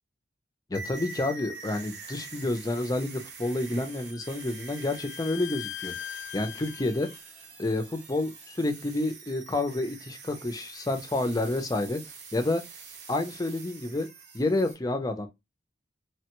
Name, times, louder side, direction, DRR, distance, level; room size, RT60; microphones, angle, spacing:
voice 1, 0.7-5.9 6.3-7.1 7.6-12.0 12.3-12.6 13.1-14.1 14.3-15.3, left 2 dB, 20° left, 0.5 m, -29 dB
sound 1, 0.7-14.7, right 4 dB, 65° right, 0.8 m, -45 dB
Bowed string instrument, 3.4-7.2, left 13 dB, 80° left, 0.4 m, -42 dB
3.2 x 2.2 x 2.9 m
head